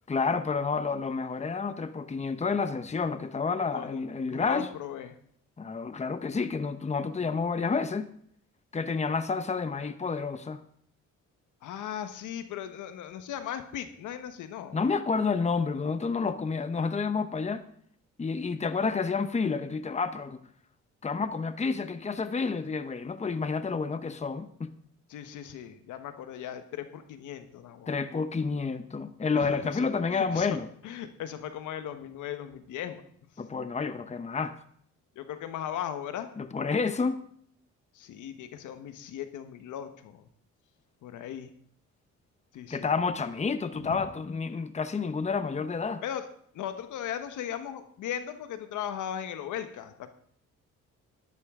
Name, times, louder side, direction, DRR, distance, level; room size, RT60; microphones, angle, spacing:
voice 1, 0.1-4.7 5.6-8.1 8.7-10.6 14.7-17.6 18.2-20.4 21.0-24.7 27.9-30.7 33.4-34.6 36.4-37.2 42.7-46.0, left 4 dB, 20° left, 0.9 m, -29 dB
voice 2, 3.7-5.2 11.6-14.8 25.1-27.9 29.3-30.6 30.8-33.0 35.1-36.3 37.9-40.2 41.0-41.5 42.5-42.9 43.8-44.0 46.0-46.2 46.5-50.1, left 10 dB, 85° left, 1.3 m, -38 dB
12.0 x 12.0 x 3.7 m
cardioid pair, 90°, 30 cm